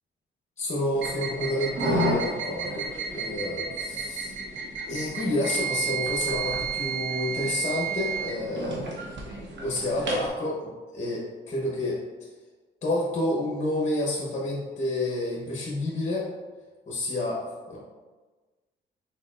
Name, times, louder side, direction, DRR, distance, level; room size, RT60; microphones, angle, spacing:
voice 1, 0.6-2.8 3.1-4.3 4.9-8.8 9.6-12.0 12.8-16.3 16.9-17.8, left 1 dB, 35° left, -4 dB, 1.0 m, -29 dB
sound 1, 1.0-10.3, right 3 dB, 65° right, 1.1 m, -31 dB
4.3 x 4.1 x 2.5 m, 1.3 s
cardioid pair, 90°, 20 cm